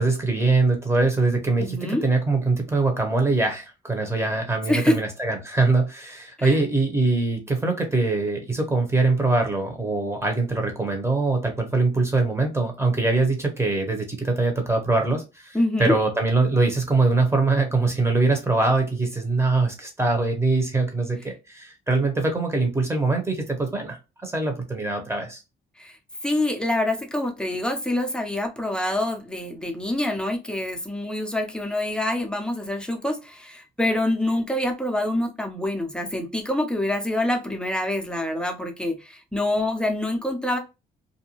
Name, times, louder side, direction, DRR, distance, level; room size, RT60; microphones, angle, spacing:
voice 1, 0.0-24.0 24.2-25.4, right 3 dB, 15° right, 1.0 m, -23 dB
voice 2, 1.6-2.0 4.7-5.0 6.4-6.6 15.5-16.0 25.8-26.0 26.2-40.6, left 1 dB, 5° left, 0.6 m, -26 dB
2.5 x 2.2 x 2.9 m
cardioid pair, 90°, 20 cm